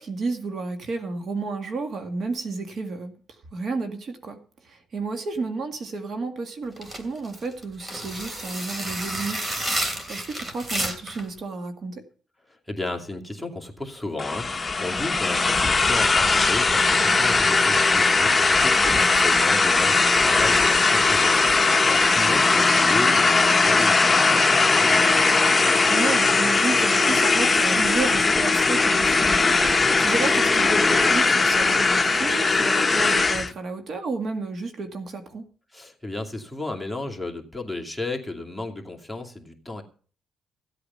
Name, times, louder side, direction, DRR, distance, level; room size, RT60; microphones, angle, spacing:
voice 1, 0.0-3.1 3.5-4.4 4.7-9.4 9.8-12.0 18.9-19.1 22.5-22.7 25.9-35.4, right 3 dB, 55° right, 6 dB, 2.1 m, -31 dB
sound 1, 6.8-11.3, right 1 dB, 25° right, 2.9 m, -30 dB
voice 2, 12.5-25.2 35.7-39.8, left 2 dB, ahead, 0 dB, 2.5 m, -34 dB
sound 2, 14.2-33.5, left 3 dB, 20° left, 1.0 m, -19 dB
15.5 x 8.6 x 5.6 m, 0.42 s
cardioid pair, 90°, 0 cm